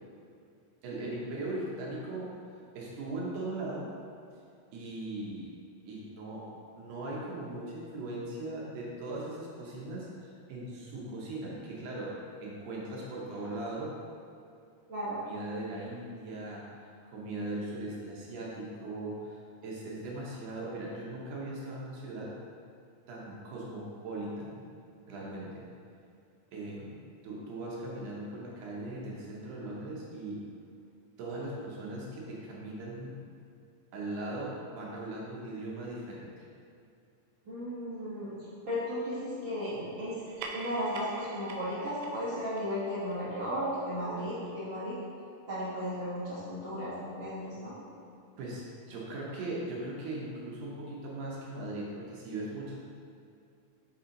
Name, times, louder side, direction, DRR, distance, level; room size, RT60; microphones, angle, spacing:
voice 1, 0.8-2.4 2.7-3.9 4.7-5.5 5.9-14.0 15.2-16.7 17.1-19.4 19.6-22.4 23.1-24.6 25.1-25.7 26.5-30.5 31.2-33.2 33.9-36.5 48.4-52.8, right 2 dB, 70° right, -4 dB, 2.2 m, -39 dB
voice 2, 14.9-15.2 37.5-38.3 38.6-40.2 40.5-45.0 45.5-47.8, equal, 50° right, -11 dB, 1.5 m, -35 dB
sound 1, 40.1-45.0, right 4 dB, 90° right, 1.6 m, -47 dB
6.6 x 4.2 x 3.8 m, 2.4 s
omnidirectional pair, 3.9 m